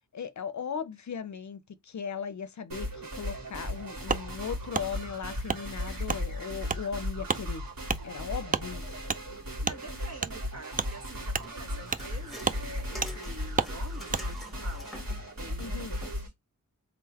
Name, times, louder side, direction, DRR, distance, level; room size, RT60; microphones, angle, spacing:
voice 1, 0.1-7.6 8.0-9.0 15.6-16.0, left 7 dB, 55° left, 0.6 m, -38 dB
sound 1, 2.7-16.3, left 1 dB, 70° right, 2.7 m, -36 dB
Wood, 4.1-4.2 4.7-4.9 5.5-5.6 6.1-6.2 6.7-6.8 7.3-7.4 7.9-8.0 8.5-8.7 9.1-9.2 9.6-9.8 10.2-10.3 10.7-10.9 11.3-11.5 11.9-12.1 12.4-12.6 13.0-13.1 13.6-13.7 14.1-14.2, right 5 dB, 25° right, 0.3 m, -30 dB
voice 2, 9.4-14.9 15.3-16.3, right 2 dB, 50° right, 1.3 m, -47 dB
sound 2, 11.4-15.3 16.0-16.1, left 1 dB, ahead, 1.3 m, -47 dB
3.8 x 3.6 x 2.9 m
wide cardioid pair, 105°, 34 cm